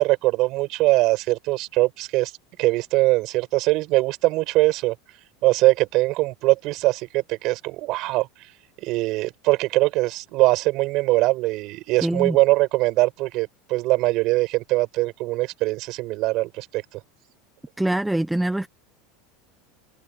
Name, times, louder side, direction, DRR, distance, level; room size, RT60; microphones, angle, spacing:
voice 1, 0.0-2.3 2.6-4.9 5.4-8.3 8.8-17.0, right 20 dB, 50° right, 6.7 m, -22 dB
voice 2, 12.0-12.4 17.8-18.7, right 1 dB, 5° right, 1.0 m, -23 dB
supercardioid pair, 145°, 0 cm